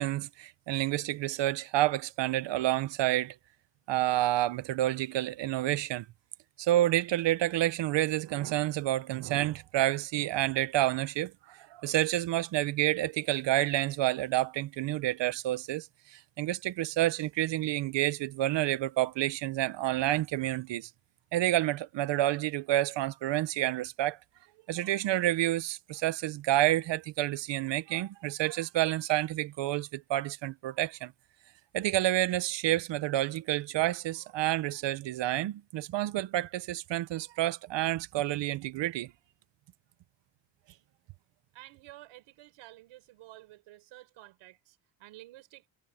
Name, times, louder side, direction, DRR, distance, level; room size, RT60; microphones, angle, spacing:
voice 1, 0.0-3.3 3.9-6.0 6.6-20.9 21.3-24.2 24.7-31.1 31.7-39.1, right 15 dB, 60° right, 1.2 m, -29 dB
voice 2, 41.5-45.7, right 17 dB, 80° right, 4.6 m, -52 dB
cardioid pair, 120°, 48 cm